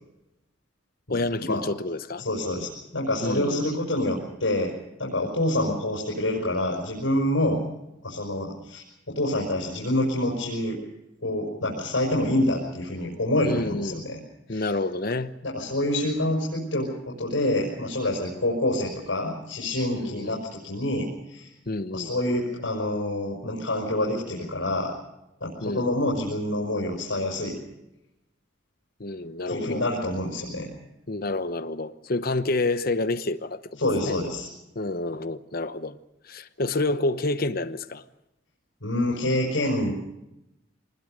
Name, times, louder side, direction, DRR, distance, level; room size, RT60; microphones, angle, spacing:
voice 1, 1.1-2.2 3.2-3.8 13.4-14.0 14.5-15.3 19.9-20.4 21.7-22.1 25.6-26.0 29.0-29.8 31.1-33.8 34.1-34.2 34.7-36.0 36.2-38.0, left 2 dB, 50° left, 1.0 m, -29 dB
voice 2, 2.2-4.7 5.0-7.6 8.0-10.8 11.2-14.2 14.5-14.7 15.4-21.5 21.9-24.9 25.4-27.6 29.5-30.7 33.8-34.5 38.8-39.9, left 1 dB, 80° left, 5.8 m, -27 dB
24.5 x 20.5 x 6.6 m
head